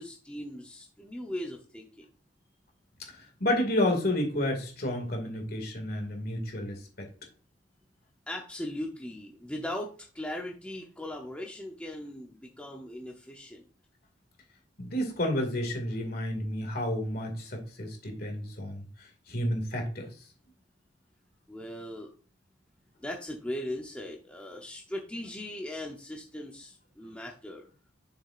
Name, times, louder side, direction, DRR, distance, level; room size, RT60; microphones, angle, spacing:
voice 1, 0.0-2.0 8.3-9.9 10.1-13.6 21.5-22.1 23.0-27.7, left 1 dB, 5° left, 0 dB, 0.7 m, -39 dB
voice 2, 3.1-7.1 14.8-18.8 19.3-20.1, left 1 dB, 55° left, 3 dB, 2.2 m, -31 dB
7.0 x 6.6 x 2.5 m, 0.38 s
head